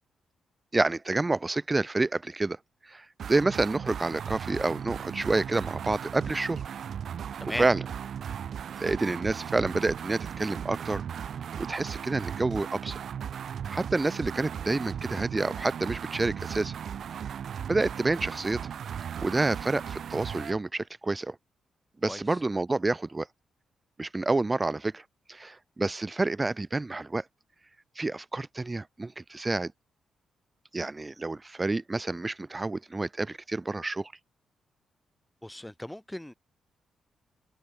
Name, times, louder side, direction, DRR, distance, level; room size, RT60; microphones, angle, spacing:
voice 1, 0.7-2.6 2.8-6.6 7.4-7.8 8.8-11.0 11.6-13.0 13.7-16.7 17.7-18.6 19.2-21.4 22.0-23.3 24.0-25.0 25.3-27.2 28.0-29.7 30.7-34.1, right 2 dB, 25° right, 0.7 m, -28 dB
sound 1, 3.2-20.6, right 8 dB, 65° right, 1.7 m, -37 dB
voice 2, 22.0-22.4 35.4-36.3, left 1 dB, 10° left, 1.5 m, -37 dB
supercardioid pair, 50°, 0 cm